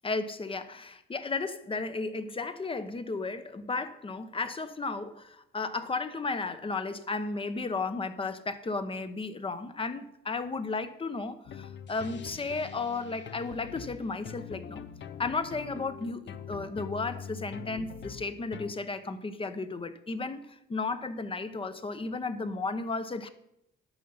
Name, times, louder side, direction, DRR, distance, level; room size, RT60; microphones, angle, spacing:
voice 1, 0.0-14.9 15.2-23.3, left 3 dB, 25° left, 11 dB, 0.9 m, -34 dB
sound 1, 11.4-18.7, left 8 dB, 65° left, 0.7 m, -43 dB
11.0 x 6.5 x 5.6 m, 0.80 s
cardioid pair, 90°, 20 cm